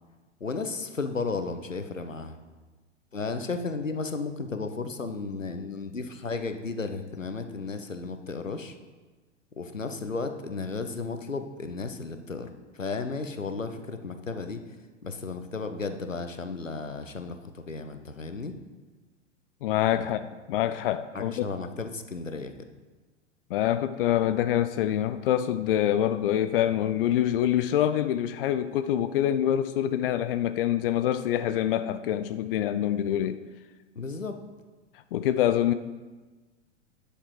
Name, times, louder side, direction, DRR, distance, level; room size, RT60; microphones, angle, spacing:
voice 1, 0.4-2.4 3.1-8.8 9.6-14.6 15.0-18.6 21.1-22.5 33.9-34.4, left 4 dB, 90° left, 8 dB, 0.9 m, -34 dB
voice 2, 19.6-21.4 23.5-33.4 35.1-35.7, left 11 dB, 50° left, 12 dB, 0.5 m, -25 dB
10.5 x 6.7 x 4.9 m, 1.3 s
figure-of-eight pair, 100°, 37 cm